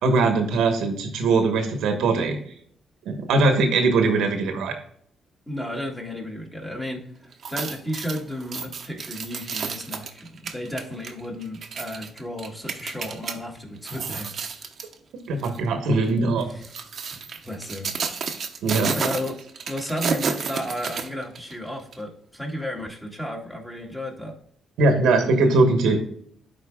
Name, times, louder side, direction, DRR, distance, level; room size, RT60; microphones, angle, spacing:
voice 1, 0.0-2.4 3.0-4.7 15.3-16.5 18.6-19.0 24.8-26.0, right 3 dB, 90° right, 6 dB, 1.2 m, -21 dB
voice 2, 5.5-14.3 16.4-16.8 17.1-18.3 18.9-19.4 19.7-24.4, equal, 10° left, 0 dB, 2.3 m, -33 dB
sound 1, 7.3-13.4 13.8-14.9 15.4-15.6 16.4-21.5 21.9-22.0, right 5 dB, 55° right, 1.0 m, -31 dB
11.5 x 4.5 x 2.3 m, 0.62 s
cardioid pair, 95°, 0 cm